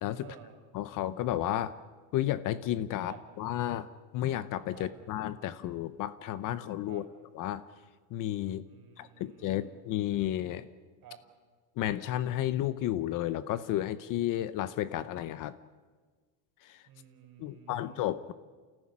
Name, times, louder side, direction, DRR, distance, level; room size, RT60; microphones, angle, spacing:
voice 1, 0.2-0.6 3.0-3.2 4.7-4.9 6.9-7.0 8.7-9.7 11.0-11.2 16.9-18.1, right 10 dB, 45° right, 3 dB, 6.2 m, -52 dB
voice 2, 0.7-1.7 2.1-3.9 4.1-7.0 7.3-7.6 8.1-8.6 9.0-10.7 11.8-15.5 16.6-16.8 17.4-18.3, left 13 dB, 40° left, 15 dB, 0.8 m, -32 dB
30.0 x 14.0 x 9.8 m, 1.5 s
cardioid pair, 150°, 49 cm